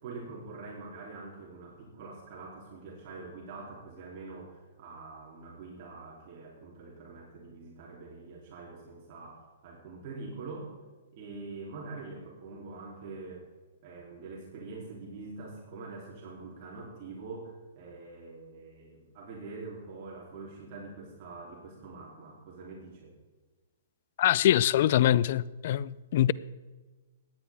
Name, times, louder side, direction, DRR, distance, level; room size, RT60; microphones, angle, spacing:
voice 1, 0.0-10.7 11.1-13.5 13.8-23.1, right 3 dB, 45° right, 3.2 m, -44 dB
voice 2, 24.2-26.3, left 12 dB, 55° left, 0.4 m, -24 dB
17.0 x 10.5 x 3.5 m
hypercardioid pair, 140°, 0 cm